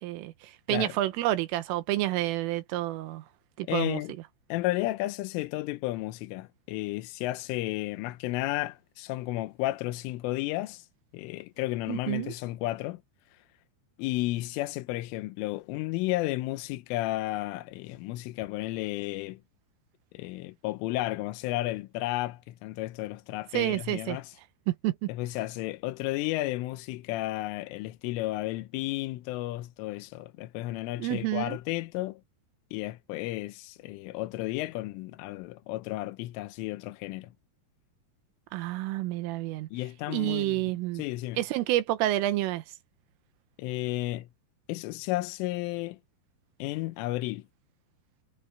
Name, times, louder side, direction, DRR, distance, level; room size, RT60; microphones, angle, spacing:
voice 1, 0.0-3.2 3.6-4.0 11.9-12.3 23.5-24.2 24.7-25.1 31.0-31.6 38.5-39.7 40.1-41.0 41.4-42.6, right 15 dB, 85° right, 3.8 m, -29 dB
voice 2, 3.7-4.2 4.5-10.9 11.1-13.0 14.0-19.4 20.2-24.3 25.1-32.2 32.7-37.3 39.7-40.7 41.0-41.4 43.6-44.3 44.7-46.0 46.6-47.5, left 17 dB, 85° left, 3.5 m, -33 dB
omnidirectional pair, 5.6 m